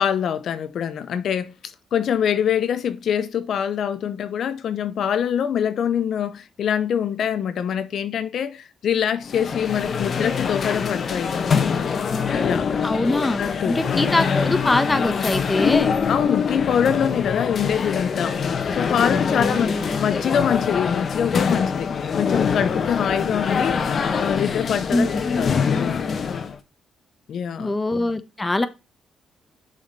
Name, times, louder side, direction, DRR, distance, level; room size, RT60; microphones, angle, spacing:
voice 1, 0.0-11.7 12.4-13.0 13.4-14.1 16.1-19.7 20.0-21.9 22.2-25.1 25.4-25.6 27.3-27.7, left 8 dB, 65° left, 0.7 m, -24 dB
sound 1, 9.2-26.6, left 6 dB, 50° left, 1.1 m, -24 dB
voice 2, 12.8-16.0 19.3-20.0 24.9-25.2 27.6-28.7, left 2 dB, 15° left, 1.2 m, -23 dB
6.5 x 5.1 x 5.3 m
cardioid pair, 90°, 0 cm